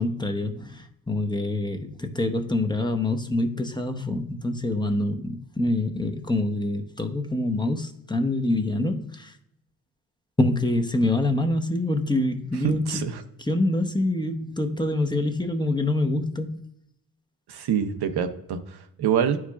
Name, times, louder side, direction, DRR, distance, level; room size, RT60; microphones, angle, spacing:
voice 1, 0.0-9.3 10.4-13.0 13.4-16.6, left 2 dB, 10° left, 4 dB, 0.7 m, -26 dB
voice 2, 12.6-13.2 17.5-19.4, right 8 dB, 80° right, 7 dB, 0.8 m, -26 dB
11.0 x 4.7 x 2.3 m, 0.78 s
cardioid pair, 80°, 39 cm